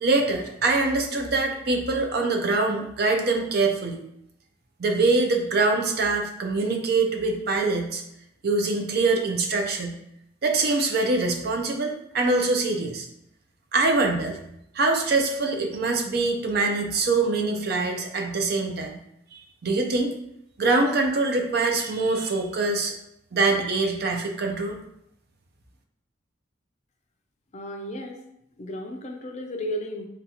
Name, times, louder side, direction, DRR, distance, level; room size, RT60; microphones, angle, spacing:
voice 1, 0.0-4.0 4.8-8.0 8.4-10.0 10.4-13.1 13.7-14.4 14.7-19.0 19.3-20.1 20.6-22.9 23.3-24.8, right 3 dB, 55° right, 3 dB, 0.5 m, -24 dB
voice 2, 27.5-28.2 28.6-30.1, equal, 35° left, 4 dB, 0.4 m, -33 dB
3.7 x 2.3 x 2.9 m, 0.78 s
head